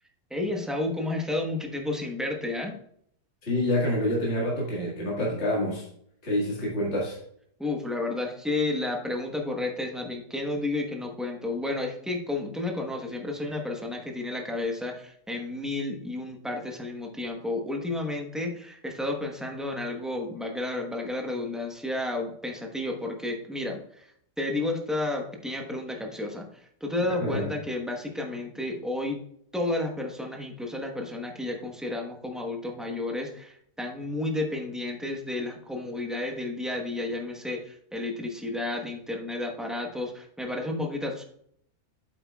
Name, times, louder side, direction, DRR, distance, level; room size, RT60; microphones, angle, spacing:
voice 1, 0.3-2.8 7.6-24.1 24.4-26.5 26.8-29.2 29.5-41.2, left 2 dB, ahead, 1 dB, 0.9 m, -31 dB
voice 2, 3.4-5.9 6.2-7.2 27.2-27.5, left 1 dB, 45° left, -4 dB, 2.2 m, -27 dB
8.6 x 8.1 x 2.4 m, 0.66 s
omnidirectional pair, 1.7 m